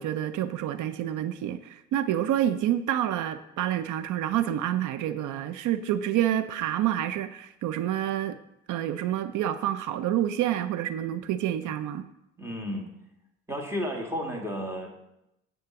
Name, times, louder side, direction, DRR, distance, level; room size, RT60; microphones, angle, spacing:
voice 1, 0.0-8.4 8.7-12.1, right 11 dB, 80° right, 12 dB, 0.5 m, -28 dB
voice 2, 12.4-12.9 13.5-14.9, equal, 10° right, 1 dB, 1.8 m, -32 dB
9.3 x 3.9 x 6.9 m, 0.85 s
cardioid pair, 90°, 30 cm